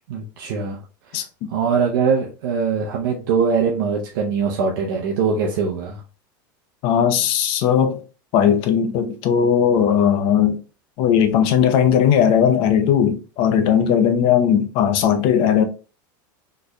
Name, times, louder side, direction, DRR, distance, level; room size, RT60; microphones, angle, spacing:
voice 1, 0.1-0.8 1.1-1.2 1.5-6.0, right 5 dB, 75° right, 0.8 m, -22 dB
voice 2, 6.8-8.0 8.3-10.6 11.0-15.6, left 8 dB, 50° left, 0.7 m, -17 dB
4.1 x 3.2 x 2.2 m
supercardioid pair, 145°, 11 cm